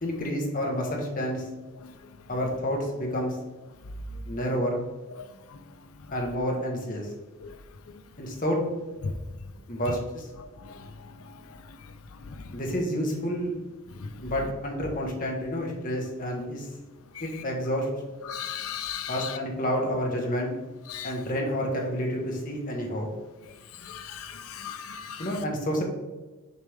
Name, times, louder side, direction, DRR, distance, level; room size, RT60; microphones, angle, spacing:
voice 1, 0.0-1.4 2.3-3.4 4.3-4.8 6.1-7.1 8.2-8.6 9.7-10.3 12.5-13.5 14.2-16.7 17.2-17.9 19.1-20.5 21.0-23.1 25.2-25.8, equal, 40° left, 1.2 m, -29 dB
voice 2, 18.3-19.3 20.9-21.1 23.9-25.3, left 7 dB, 80° left, 0.5 m, -35 dB
6.7 x 4.3 x 3.5 m
head